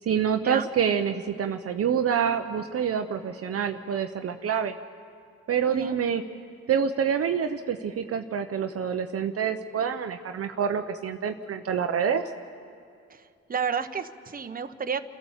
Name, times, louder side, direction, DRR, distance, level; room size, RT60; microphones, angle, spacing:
voice 1, 0.1-4.7 5.5-6.2 6.7-12.2, right 7 dB, 50° right, 6 dB, 0.8 m, -27 dB
voice 2, 13.5-15.0, right 6 dB, 30° right, 8 dB, 1.0 m, -31 dB
29.0 x 12.5 x 7.3 m, 2.4 s
cardioid pair, 90°, 30 cm